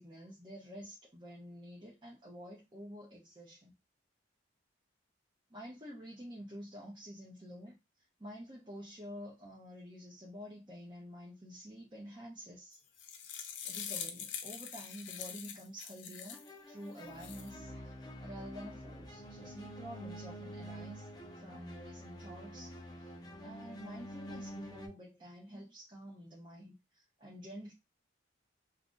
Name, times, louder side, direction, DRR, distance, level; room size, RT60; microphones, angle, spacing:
voice 1, 0.0-3.7 5.5-7.8 8.2-12.8 13.6-17.9 18.2-21.1 21.4-22.8 23.4-27.7, equal, 25° right, 0.9 m, -49 dB
sound 1, 12.7-16.5 17.0-17.5, left 8 dB, 65° left, 0.5 m, -44 dB
sound 2, 16.3-24.9, equal, 20° left, 0.6 m, -47 dB
2.9 x 2.5 x 3.8 m
head